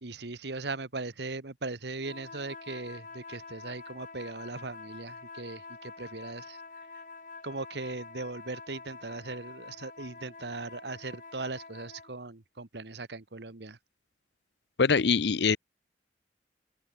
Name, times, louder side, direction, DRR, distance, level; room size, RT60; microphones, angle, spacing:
voice 1, 0.0-6.6 7.4-13.8, right 3 dB, 70° right, 1.4 m, -39 dB
sound 1, 2.0-12.2, left 4 dB, 45° left, 3.1 m, -47 dB
voice 2, 14.8-15.6, left 5 dB, 70° left, 0.6 m, -23 dB
open air
head